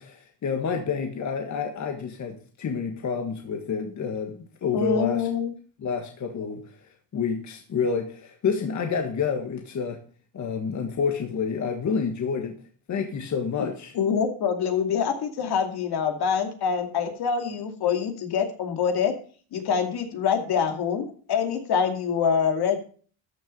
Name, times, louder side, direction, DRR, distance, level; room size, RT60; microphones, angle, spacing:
voice 1, 0.0-5.3 5.8-6.6 7.1-10.0 10.3-12.6 12.9-13.9, left 6 dB, 40° left, 4 dB, 1.7 m, -28 dB
voice 2, 4.7-5.5 13.6-13.7 13.9-19.1 19.5-22.8, left 6 dB, 60° left, 6 dB, 2.5 m, -25 dB
13.0 x 6.5 x 5.4 m, 0.43 s
cardioid pair, 120°, 44 cm